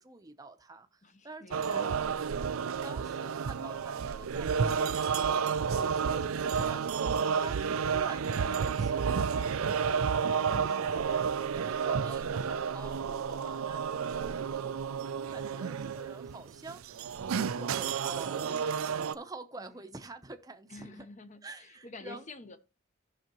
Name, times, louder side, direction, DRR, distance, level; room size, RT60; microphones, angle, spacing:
voice 1, 0.0-2.1 2.8-11.0 11.5-16.8 17.3-18.6 19.1-21.1 21.4-22.2, right 3 dB, 15° right, 0.7 m, -48 dB
voice 2, 1.0-1.9 10.5-11.0 19.6-19.8 20.7-22.6, left 3 dB, 35° left, 0.8 m, -48 dB
sound 1, 1.5-19.1, right 6 dB, 85° right, 0.5 m, -31 dB
15.0 x 5.7 x 3.0 m
head